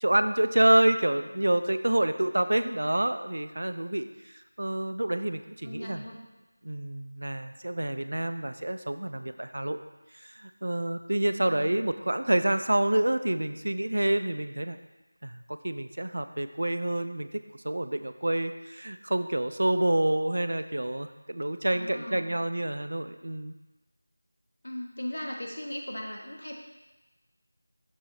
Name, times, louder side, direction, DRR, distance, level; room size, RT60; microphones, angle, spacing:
voice 1, 0.0-6.0 6.6-9.8 10.2-14.8 15.2-23.6, right 1 dB, 55° right, 9 dB, 0.3 m, -28 dB
voice 2, 2.5-2.9 5.6-6.2 11.5-11.8 21.7-22.4 24.6-26.5, left 1 dB, 70° left, 0 dB, 1.3 m, -38 dB
6.2 x 4.7 x 3.9 m, 1.1 s
figure-of-eight pair, 180°, 0 cm